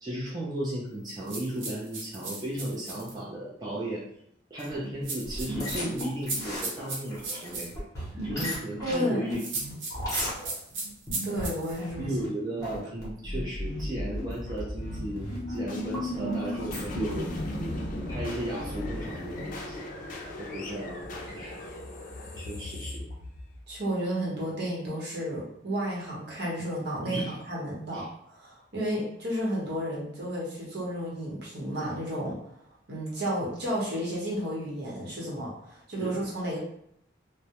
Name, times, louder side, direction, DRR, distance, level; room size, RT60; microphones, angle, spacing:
voice 1, 0.0-4.0 4.5-7.7 8.2-9.4 12.0-17.8 18.1-19.8 20.4-21.0 21.3-21.6 22.4-23.0 27.0-27.3 27.9-28.1 36.0-36.1, right 1 dB, 20° right, -6 dB, 0.4 m, -35 dB
sound 1, 1.3-3.1 5.0-7.7 9.3-11.8, right 3 dB, 90° right, 0.6 m, -35 dB
sound 2, 4.6-17.1, equal, 20° left, 0.8 m, -37 dB
voice 2, 8.8-9.3 11.2-12.1 23.7-32.4 32.9-36.6, equal, 60° right, -5 dB, 0.9 m, -32 dB
sound 3, 13.2-24.0, left 1 dB, 45° left, 0.4 m, -36 dB
2.2 x 2.0 x 2.8 m, 0.72 s
head